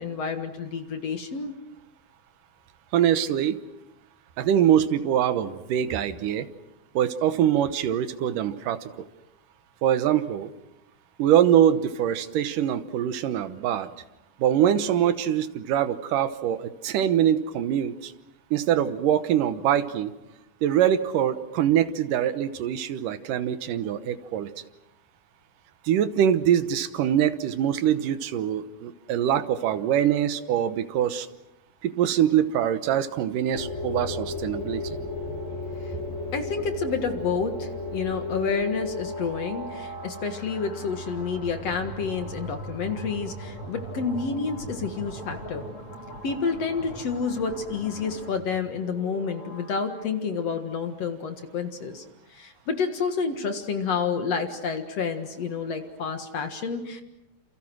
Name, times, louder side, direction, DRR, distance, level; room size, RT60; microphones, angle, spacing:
voice 1, 0.0-1.5 36.3-45.6 46.2-52.0 52.3-57.0, left 5 dB, 50° left, 7 dB, 2.4 m, -29 dB
voice 2, 2.9-3.6 4.4-6.5 7.0-8.9 9.8-10.5 11.2-13.9 14.4-18.1 18.5-20.1 20.6-24.5 25.8-31.3 31.8-34.8, right 10 dB, 70° right, 12 dB, 2.5 m, -23 dB
sound 1, 33.5-50.0, left 1 dB, 35° left, 6.5 m, -36 dB
28.5 x 28.5 x 6.2 m, 0.91 s
omnidirectional pair, 4.1 m